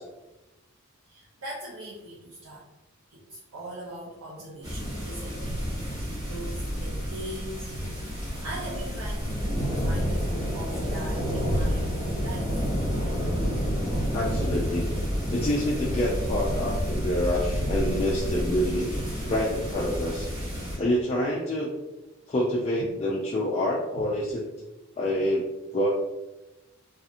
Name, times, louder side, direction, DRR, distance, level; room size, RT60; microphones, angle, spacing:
voice 1, 1.1-2.6 3.1-5.5 5.9-7.7 8.2-13.0 22.8-22.9 23.9-24.1, right 1 dB, 90° right, -7 dB, 0.7 m, -40 dB
sound 1, 4.6-20.8, equal, 20° right, 0.9 m, -29 dB
voice 2, 14.1-14.9 15.3-20.3 20.8-21.7 22.3-24.4 25.0-25.5 25.7-25.9, left 1 dB, 30° left, -4 dB, 0.3 m, -27 dB
2.8 x 2.4 x 2.4 m, 1.0 s
head